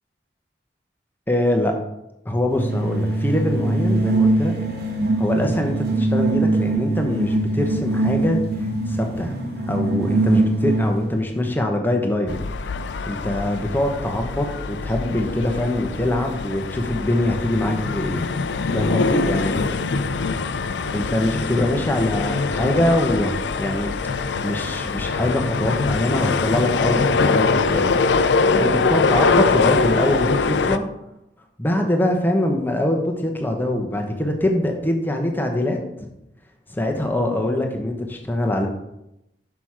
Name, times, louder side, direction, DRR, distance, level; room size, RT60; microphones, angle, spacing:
voice 1, 1.3-1.8 2.2-4.5 5.2-9.3 9.7-12.4 13.1-18.2 18.7-19.6 20.9-23.3 23.6-23.9 24.4-28.0 28.5-30.9 31.6-35.8 36.7-38.7, left 1 dB, 10° left, 3 dB, 0.9 m, -23 dB
sound 1, 2.5-11.1, right 2 dB, 60° right, 1.3 m, -22 dB
sound 2, 12.3-30.8, left 4 dB, 80° left, 0.4 m, -23 dB
6.1 x 5.9 x 4.8 m, 0.86 s
head